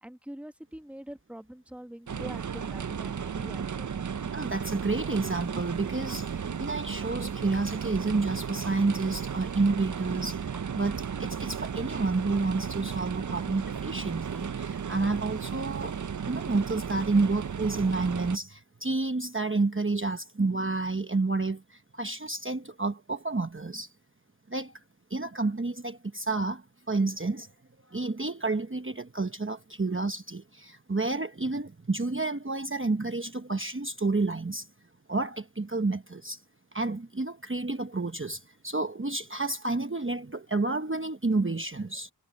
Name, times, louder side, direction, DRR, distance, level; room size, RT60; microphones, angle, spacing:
voice 1, 0.0-3.9, right 1 dB, 5° right, 1.4 m, -44 dB
sound 1, 2.1-18.4, right 7 dB, 50° right, 0.5 m, -34 dB
voice 2, 4.3-10.5 10.7-16.0 16.3-23.9 24.5-24.8 25.1-27.5 27.9-34.7 35.1-36.4 36.7-42.1, right 3 dB, 30° right, 1.0 m, -30 dB
sound 2, 10.5-11.4 11.8-12.0 12.6-12.8 13.2-13.5 13.8-13.9 14.3-14.6 14.9-15.1 15.4-17.3, right 2 dB, 65° right, 7.3 m, -56 dB
wide cardioid pair, 45°, 41 cm